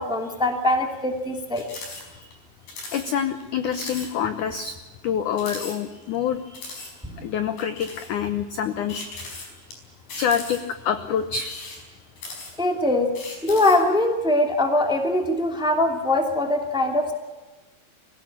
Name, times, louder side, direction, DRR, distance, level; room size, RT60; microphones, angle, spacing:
voice 1, 0.0-1.7 7.0-7.2 12.6-13.1 13.4-17.1, left 1 dB, ahead, 4 dB, 1.7 m, -22 dB
sound 1, 1.5-2.0 2.3-2.4 2.7-3.1 3.4-3.5 3.7-4.1 4.5-4.6 5.3-6.2 6.5-6.9 7.6-8.1 8.9-9.7 10.1-10.8 11.3-12.7 13.1-13.9, left 3 dB, 55° left, 6.6 m, -38 dB
voice 2, 1.7-2.3 2.9-4.8 5.0-6.9 7.2-9.5 10.2-11.5, left 8 dB, 75° left, 9 dB, 1.9 m, -27 dB
23.5 x 16.5 x 8.7 m, 1.2 s
omnidirectional pair, 4.8 m